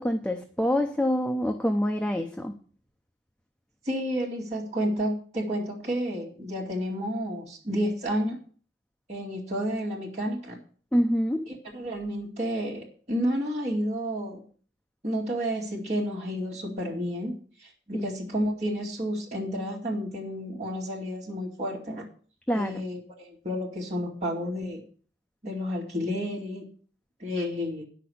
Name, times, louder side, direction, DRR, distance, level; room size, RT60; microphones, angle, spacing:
voice 1, 0.0-2.5 10.9-11.5 17.9-18.1 22.5-22.8, equal, 5° left, 4 dB, 0.7 m, -26 dB
voice 2, 3.8-8.4 9.1-10.6 11.5-14.4 15.0-17.3 17.6-22.1 22.5-24.8 25.4-26.7 27.2-27.8, equal, 35° right, -5 dB, 2.4 m, -31 dB
10.5 x 6.0 x 7.8 m, 0.43 s
head